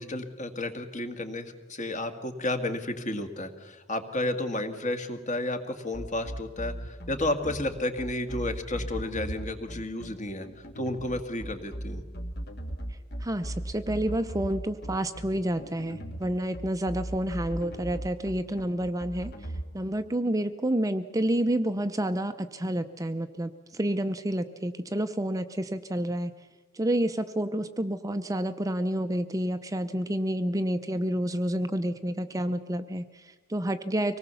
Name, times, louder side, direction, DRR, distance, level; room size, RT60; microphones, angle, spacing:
voice 1, 0.0-12.0, left 1 dB, 40° left, 7 dB, 1.9 m, -32 dB
sound 1, 5.9-19.6, right 1 dB, 55° left, 2.0 m, -38 dB
voice 2, 12.9-19.3 19.7-26.3 26.7-34.2, right 1 dB, 15° right, 9 dB, 0.6 m, -29 dB
25.0 x 18.5 x 7.0 m, 1.2 s
head